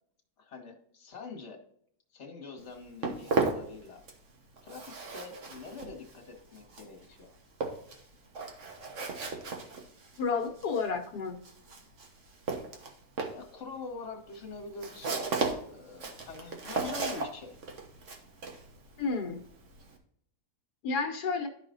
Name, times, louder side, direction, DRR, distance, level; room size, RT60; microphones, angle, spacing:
voice 1, 0.4-1.6 2.1-4.0 4.6-7.4 13.3-17.6, left 4 dB, 45° left, 1 dB, 1.7 m, -45 dB
Walk footsteps, 2.6-4.3 4.6-20.0, right 4 dB, 50° right, 1.5 m, -36 dB
voice 2, 10.2-11.4 19.0-19.4 20.8-21.5, left 4 dB, 80° left, 3 dB, 1.5 m, -31 dB
12.5 x 5.0 x 2.6 m, 0.67 s
omnidirectional pair, 1.7 m